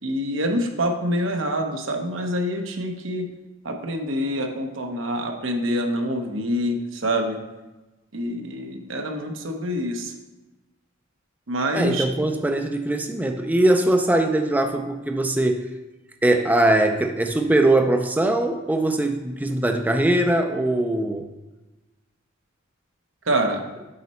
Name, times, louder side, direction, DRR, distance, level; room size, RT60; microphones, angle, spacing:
voice 1, 0.0-3.3 3.6-7.4 8.1-10.1 11.5-12.1 23.2-23.6, equal, 80° right, 4 dB, 0.9 m, -26 dB
voice 2, 11.7-15.6 16.2-21.3, right 1 dB, 10° right, 5 dB, 0.3 m, -21 dB
8.0 x 4.2 x 4.3 m, 1.1 s
head